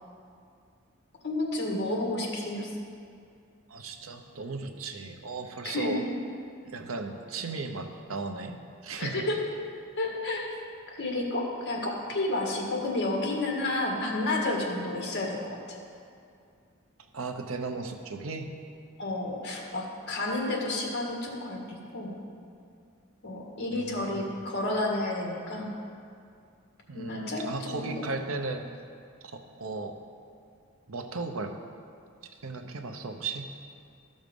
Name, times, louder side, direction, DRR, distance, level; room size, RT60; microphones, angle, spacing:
voice 1, 1.2-2.7 5.6-6.0 9.0-9.3 10.0-10.5 11.0-15.6 19.0-22.2 23.2-25.7 26.9-28.1, left 2 dB, 55° left, -1 dB, 1.8 m, -31 dB
voice 2, 3.7-6.0 6.7-8.5 8.8-9.2 17.1-18.5 23.7-24.4 26.9-28.7 29.2-30.0 30.9-31.6 32.4-33.5, right 3 dB, 70° right, 5 dB, 0.8 m, -36 dB
13.0 x 6.4 x 5.3 m, 2.4 s
head